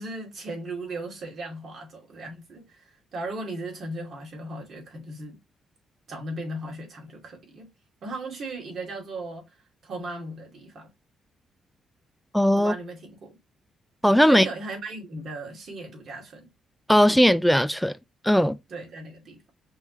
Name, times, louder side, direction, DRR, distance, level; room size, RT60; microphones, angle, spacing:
voice 1, 0.0-5.4 6.1-7.7 8.0-9.6 9.8-10.9 12.6-13.4 14.3-16.5 18.7-19.5, right 2 dB, 60° right, 2.4 m, -37 dB
voice 2, 12.3-12.7 14.0-14.5 16.9-17.9 18.2-18.6, equal, ahead, 0.5 m, -18 dB
5.4 x 3.2 x 3.0 m
cardioid pair, 85°, 0 cm